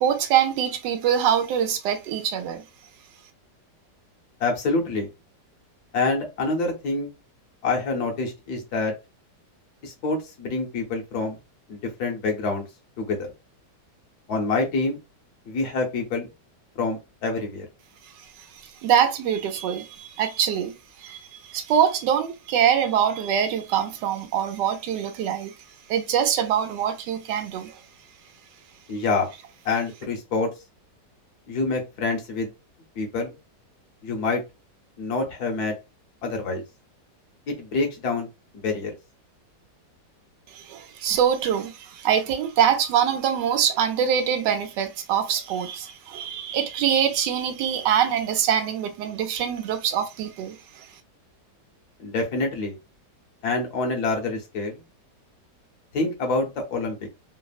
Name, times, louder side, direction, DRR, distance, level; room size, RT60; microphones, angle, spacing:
voice 1, 0.0-2.6 18.8-25.5 25.9-27.8 40.5-50.9, right 9 dB, 80° right, 1.2 m, -24 dB
voice 2, 4.4-5.1 5.9-7.1 7.6-8.9 9.8-11.4 11.7-12.7 13.0-13.3 14.3-15.0 15.5-16.3 16.8-17.7 28.9-29.3 29.6-30.5 31.5-32.5 33.0-33.4 34.0-34.4 35.0-35.7 36.2-36.6 37.5-38.3 38.5-38.9 52.0-52.8 53.4-54.8 55.9-57.0, left 3 dB, 70° left, 1.3 m, -26 dB
3.3 x 2.0 x 2.3 m
omnidirectional pair, 1.9 m